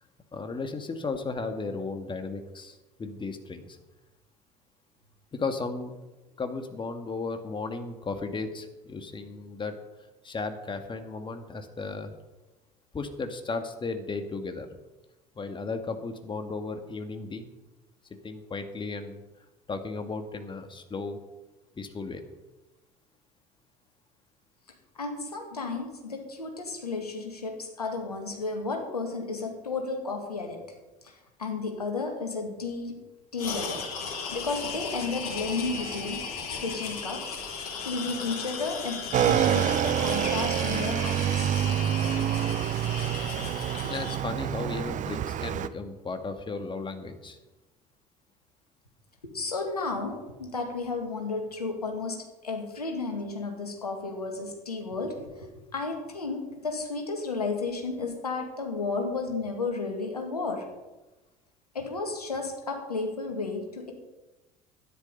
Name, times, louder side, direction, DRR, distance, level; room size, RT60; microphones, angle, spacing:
voice 1, 0.3-3.8 5.3-6.0 6.4-9.8 10.2-12.1 12.9-14.7 15.4-17.5 18.2-19.2 19.7-21.2 21.8-22.2 43.9-47.4, left 3 dB, 25° left, 6 dB, 1.9 m, -35 dB
voice 2, 25.0-30.6 31.0-31.1 31.4-33.0 33.3-37.4 37.8-41.5 49.2-55.5 55.7-60.6 61.7-63.9, left 3 dB, 90° left, 3 dB, 2.0 m, -33 dB
sound 1, 33.4-44.2, left 5 dB, 75° left, 3.1 m, -36 dB
Motorcycle / Engine, 39.1-45.7, right 10 dB, 40° right, 0.7 m, -27 dB
12.5 x 10.5 x 5.5 m, 1.1 s
figure-of-eight pair, 65°, 19 cm